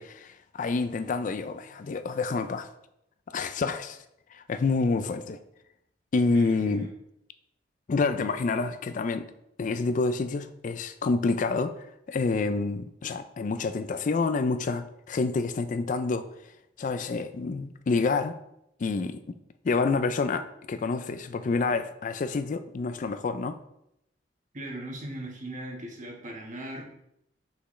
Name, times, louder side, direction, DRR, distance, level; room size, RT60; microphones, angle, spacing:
voice 1, 0.0-2.7 3.3-4.0 4.3-5.4 6.1-6.9 7.9-9.3 9.6-11.7 12.1-16.3 16.8-18.4 18.8-19.2 19.6-23.6, left 4 dB, 45° left, 10 dB, 0.4 m, -28 dB
voice 2, 6.3-6.9 24.5-26.8, right 1 dB, 45° right, 0 dB, 1.3 m, -38 dB
6.0 x 5.8 x 3.2 m, 0.79 s
head